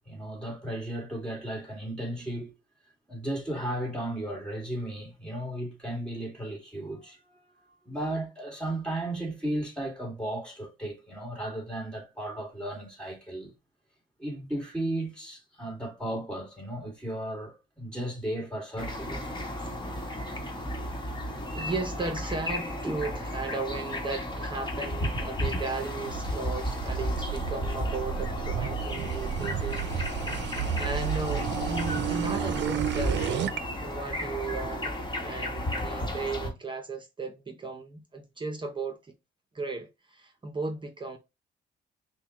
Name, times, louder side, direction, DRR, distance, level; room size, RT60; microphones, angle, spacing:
voice 1, 0.0-2.5 3.1-7.2 7.9-13.5 14.2-19.2 22.8-22.9, right 1 dB, 5° left, 2.2 m, -35 dB
sound 1, 18.8-36.5, left 1 dB, 25° left, 1.4 m, -34 dB
voice 2, 21.5-30.0 30.4-39.1 39.5-41.2, right 3 dB, 25° right, 0.8 m, -36 dB
sound 2, 26.1-33.6, right 9 dB, 65° right, 0.5 m, -32 dB
5.5 x 2.3 x 3.0 m
cardioid pair, 90°, 20 cm